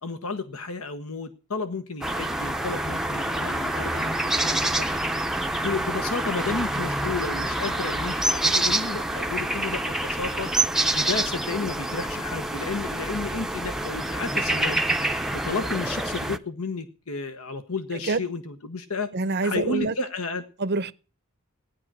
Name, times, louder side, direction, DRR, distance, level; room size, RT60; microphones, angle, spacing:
voice 1, 0.0-4.9 5.5-10.5 10.9-14.8 15.3-19.1 19.4-20.4, left 4 dB, 75° left, 1.1 m, -32 dB
sound 1, 2.0-16.4, right 1 dB, ahead, 0.6 m, -27 dB
voice 2, 19.1-19.9 20.6-20.9, right 3 dB, 50° right, 0.7 m, -26 dB
16.5 x 10.0 x 6.1 m
head